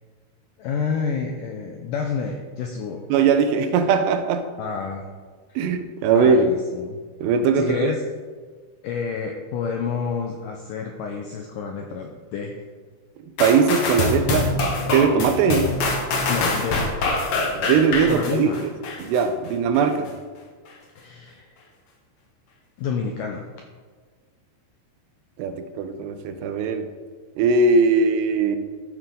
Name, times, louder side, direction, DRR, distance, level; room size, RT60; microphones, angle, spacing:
voice 1, 0.6-3.1 4.6-5.1 5.5-5.6 6.1-7.0 7.6-8.0 8.8-12.6 16.3-16.9 18.1-18.7 21.0-21.5 22.8-23.5, left 6 dB, 80° left, 2 dB, 1.9 m, -29 dB
voice 2, 3.1-4.5 5.6-6.5 7.2-7.9 13.4-14.5 14.9-15.8 17.6-18.7 19.0-20.1 25.4-26.9 27.4-28.6, right 5 dB, 90° right, 9 dB, 2.9 m, -20 dB
sound 1, 13.4-19.2 19.7-19.9, left 2 dB, 65° left, 1.5 m, -24 dB
12.5 x 8.8 x 3.8 m, 1.5 s
omnidirectional pair, 4.9 m